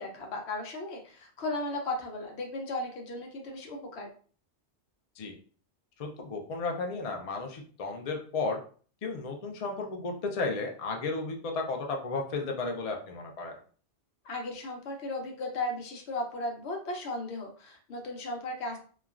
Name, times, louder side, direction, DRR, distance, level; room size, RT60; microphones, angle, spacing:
voice 1, 0.0-4.1 14.2-18.8, left 2 dB, 70° left, 2 dB, 0.9 m, -36 dB
voice 2, 6.0-8.6 9.0-13.6, left 3 dB, 50° left, 2 dB, 0.5 m, -33 dB
3.0 x 2.3 x 2.4 m, 0.42 s
omnidirectional pair, 1.2 m